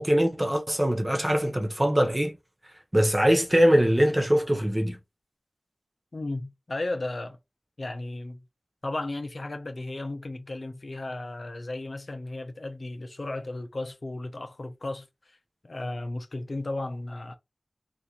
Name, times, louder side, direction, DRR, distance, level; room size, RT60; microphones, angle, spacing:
voice 1, 0.0-2.3 2.9-5.0, equal, 20° right, 0.6 m, -22 dB
voice 2, 6.1-7.4 7.8-8.4 8.8-15.4 15.6-17.3, left 2 dB, 60° left, 0.5 m, -34 dB
2.9 x 2.5 x 2.3 m
wide cardioid pair, 55°, 0 cm